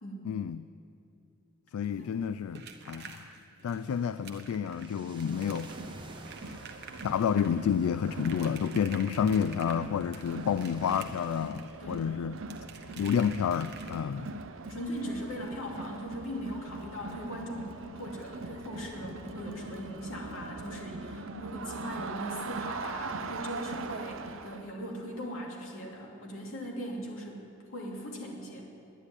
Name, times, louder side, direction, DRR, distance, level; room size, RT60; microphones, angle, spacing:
voice 1, 0.2-0.7 1.7-3.3 3.6-5.7 7.0-12.4 13.0-14.3, left 7 dB, 85° left, 14 dB, 0.3 m, -30 dB
sound 1, 1.8-14.3 15.8-15.9 16.2-16.3 16.7-16.8, right 5 dB, 50° right, 1.0 m, -49 dB
sound 2, 3.8-11.5, right 1 dB, 20° right, 1.1 m, -52 dB
Crowd, 5.2-24.7, right 3 dB, 65° right, 0.6 m, -42 dB
voice 2, 14.7-27.4 27.7-28.6, equal, 70° left, -2 dB, 2.7 m, -39 dB
11.0 x 9.8 x 9.8 m, 2.7 s
head